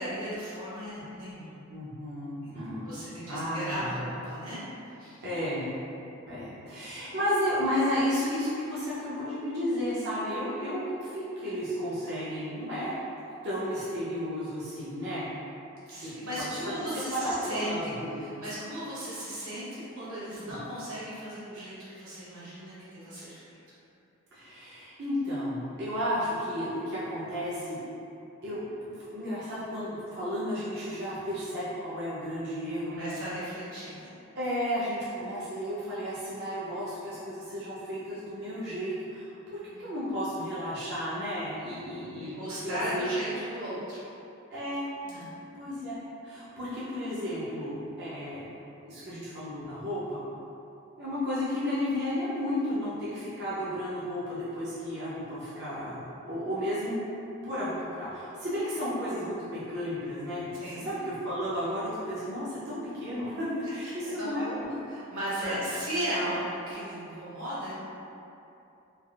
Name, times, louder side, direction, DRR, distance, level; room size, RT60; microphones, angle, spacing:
voice 1, 0.0-1.7 2.4-2.5 2.8-4.6 4.9-5.2 6.9-7.1 15.9-23.6 32.9-34.1 39.6-39.8 42.2-44.0 45.0-45.3 60.6-60.9 63.8-64.6 64.9-67.8, equal, 70° right, -10 dB, 1.2 m, -36 dB
voice 2, 1.7-4.1 5.2-5.7 6.3-12.9 13.4-15.3 16.0-18.1 24.3-27.8 28.4-33.1 34.4-42.3 42.6-43.1 44.5-44.9 45.5-48.5 48.8-50.2 51.0-57.0 57.4-60.6 60.8-64.7 65.4-65.6, equal, 50° right, -11 dB, 0.5 m, -33 dB
3.3 x 2.3 x 2.3 m, 2.8 s
head